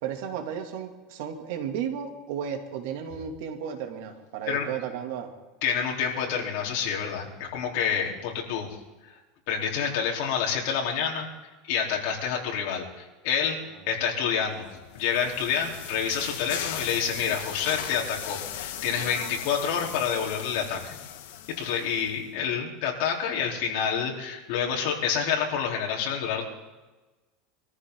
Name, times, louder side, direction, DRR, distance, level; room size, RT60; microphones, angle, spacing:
voice 1, 0.0-5.3 13.7-13.8, right 8 dB, 70° right, 4 dB, 2.7 m, -34 dB
voice 2, 5.6-8.7 9.0-9.2 9.5-11.3 11.7-13.6 13.9-14.7 14.9-21.0 21.5-26.4, left 7 dB, 65° left, -1 dB, 3.8 m, -28 dB
sound 1, 14.6-22.2, left 10 dB, 85° left, 1.7 m, -38 dB
24.5 x 14.5 x 3.9 m, 1.2 s
supercardioid pair, 150°, 0 cm